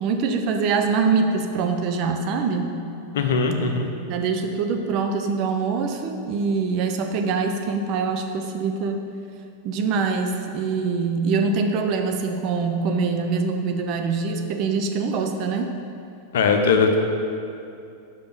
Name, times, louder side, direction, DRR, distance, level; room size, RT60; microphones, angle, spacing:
voice 1, 0.0-2.8 4.1-9.0 9.6-15.7, right 4 dB, 40° right, 5 dB, 0.6 m, -24 dB
voice 2, 3.1-3.9 16.3-17.0, left 5 dB, 60° left, 4 dB, 0.7 m, -20 dB
5.2 x 5.2 x 6.0 m, 2.5 s
figure-of-eight pair, 90°, 0 cm